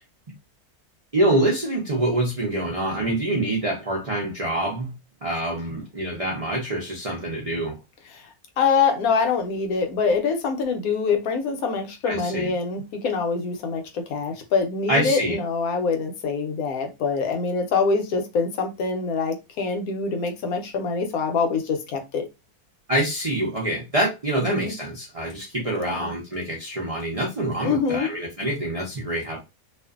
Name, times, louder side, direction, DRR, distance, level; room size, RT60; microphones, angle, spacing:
voice 1, 1.1-4.9 5.2-7.8 12.0-12.5 14.9-15.3 22.9-29.4, right 1 dB, 60° right, -3 dB, 0.3 m, -25 dB
voice 2, 8.1-22.3 24.5-24.7 25.8-26.1 27.6-28.1, left 5 dB, 75° left, 5 dB, 1.0 m, -25 dB
2.5 x 2.4 x 2.3 m, 0.25 s
omnidirectional pair, 1.6 m